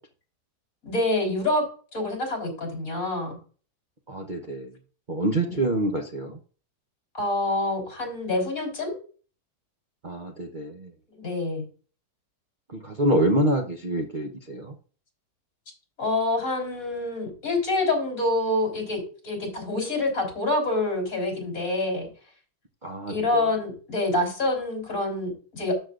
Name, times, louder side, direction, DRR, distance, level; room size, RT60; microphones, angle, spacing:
voice 1, 0.8-1.7 1.9-3.4 5.5-5.6 7.1-8.9 11.1-11.6 16.0-22.1 23.1-25.8, left 2 dB, 50° left, 2 dB, 4.0 m, -26 dB
voice 2, 4.1-4.7 5.1-6.4 10.0-10.9 12.7-14.7 22.8-23.4, right 1 dB, 35° right, 0 dB, 0.9 m, -26 dB
13.0 x 6.8 x 2.5 m, 0.39 s
omnidirectional pair, 1.8 m